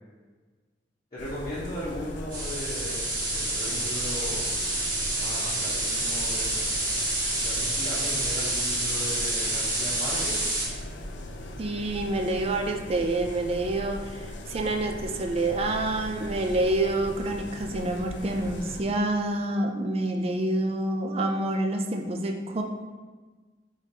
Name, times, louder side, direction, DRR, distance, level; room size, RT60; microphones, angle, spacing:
voice 1, 1.1-4.5 5.1-6.6 7.3-10.4, equal, 35° left, -10 dB, 0.9 m, -37 dB
sound 1, 1.2-18.8, left 1 dB, 90° left, 0.5 m, -39 dB
sound 2, 2.3-10.7, right 2 dB, 50° right, 1.3 m, -28 dB
voice 2, 11.6-22.6, right 2 dB, 35° right, 4 dB, 0.4 m, -27 dB
5.0 x 3.1 x 2.8 m, 1.4 s
head